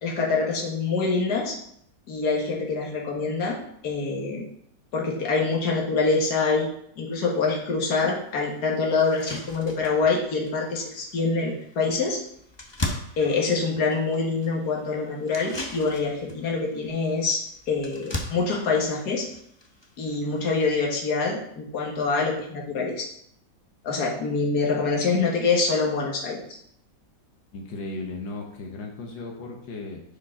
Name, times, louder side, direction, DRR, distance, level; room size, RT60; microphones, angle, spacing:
voice 1, 0.0-1.6 2.1-4.4 4.9-6.7 7.0-12.2 13.2-19.3 20.0-23.1 23.8-26.4, left 4 dB, 60° left, -1 dB, 2.1 m, -25 dB
sound 1, 8.0-8.1 8.5-8.6 9.0-20.6, left 2 dB, 25° left, 0.5 m, -39 dB
voice 2, 27.5-30.0, left 2 dB, 90° left, 0 dB, 1.8 m, -36 dB
10.5 x 4.8 x 3.8 m, 0.69 s
omnidirectional pair, 1.9 m